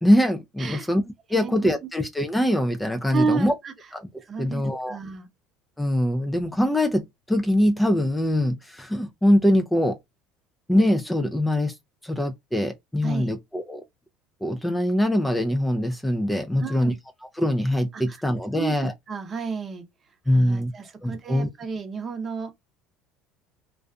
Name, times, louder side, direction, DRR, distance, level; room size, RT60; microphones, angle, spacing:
voice 1, 0.0-1.0 1.3-3.5 3.9-4.1 4.4-5.0 5.8-10.0 10.7-11.7 12.0-13.8 14.4-16.9 17.4-18.9 20.3-20.7 21.0-21.5, left 1 dB, 5° left, 0.4 m, -23 dB
voice 2, 1.3-1.7 3.1-3.7 4.3-4.6 4.9-5.3 13.0-13.3 16.6-17.0 17.9-18.2 18.5-19.8 20.3-22.5, right 5 dB, 35° right, 0.7 m, -31 dB
2.5 x 2.2 x 2.4 m
supercardioid pair, 85°, 0 cm